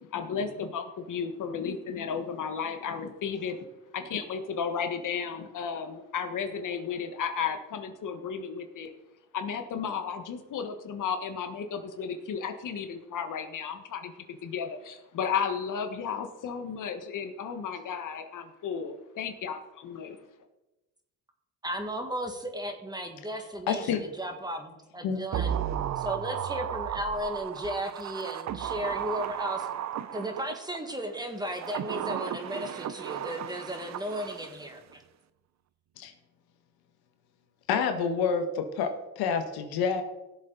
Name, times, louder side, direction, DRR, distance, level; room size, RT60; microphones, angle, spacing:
voice 1, 0.0-3.7 3.9-8.9 9.3-20.2, left 6 dB, 55° left, 7 dB, 1.5 m, -34 dB
voice 2, 21.6-25.6 26.0-29.7 30.1-35.0, equal, 10° right, 4 dB, 1.9 m, -35 dB
voice 3, 23.7-24.0 25.0-25.2 36.0-36.1 37.7-40.0, left 6 dB, 75° left, 6 dB, 1.5 m, -28 dB
sound 1, 25.3-30.8 31.4-34.6 34.9-35.0, right 10 dB, 45° right, 0.7 m, -34 dB
17.0 x 7.2 x 4.0 m, 0.99 s
cardioid pair, 95°, 37 cm